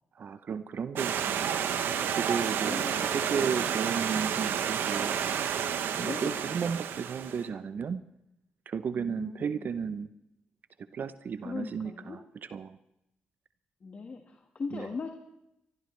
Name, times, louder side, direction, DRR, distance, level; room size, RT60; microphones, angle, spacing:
voice 1, 0.1-1.5 2.0-5.2 5.6-8.0 8.7-10.1 10.9-12.8 14.7-14.9, right 6 dB, 55° right, 12 dB, 0.7 m, -34 dB
Stream, 1.0-7.4, right 8 dB, 80° right, 1.0 m, -30 dB
voice 2, 2.6-3.0 6.0-6.5 9.0-9.6 11.4-12.2 13.8-15.1, left 4 dB, 45° left, 3 dB, 1.6 m, -39 dB
24.5 x 13.0 x 3.3 m, 0.84 s
supercardioid pair, 65°, 4 cm